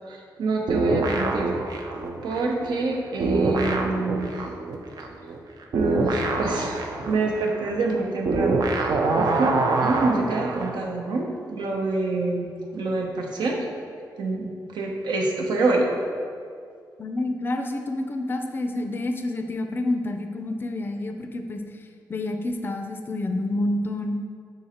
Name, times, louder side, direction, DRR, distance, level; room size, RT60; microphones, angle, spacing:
voice 1, 0.1-1.5 2.2-4.3 5.7-9.5 9.8-13.6 14.2-15.9, right 3 dB, 85° right, -1 dB, 0.9 m, -26 dB
sound 1, 0.7-2.9 3.2-10.8, right 3 dB, 65° right, 0.6 m, -25 dB
voice 2, 17.0-21.6 22.1-24.2, left 2 dB, 30° left, 6 dB, 0.4 m, -28 dB
6.3 x 4.0 x 4.2 m, 2.2 s
wide cardioid pair, 120°, 7 cm